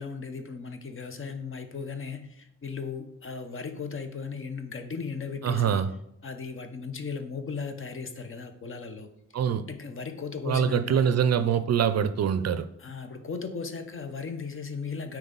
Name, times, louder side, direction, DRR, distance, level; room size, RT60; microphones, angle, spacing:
voice 1, 0.0-5.9 6.2-9.1 9.7-11.2 12.8-15.2, left 5 dB, 40° left, 0.8 m, -36 dB
voice 2, 5.4-5.9 9.3-9.7 10.5-12.7, right 8 dB, 50° right, 0.5 m, -24 dB
7.8 x 4.6 x 3.9 m
cardioid pair, 110°, 32 cm